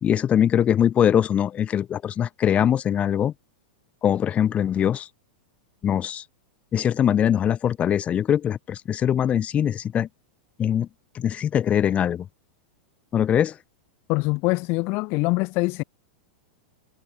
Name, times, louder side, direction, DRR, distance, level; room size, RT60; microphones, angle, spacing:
voice 1, 0.0-3.3 4.0-5.1 5.8-6.2 6.7-10.1 10.6-10.9 11.2-12.3 13.1-13.5, left 9 dB, 25° left, 3.5 m, -22 dB
voice 2, 14.1-15.8, left 26 dB, 45° left, 3.5 m, -24 dB
hypercardioid pair, 125°, 5 cm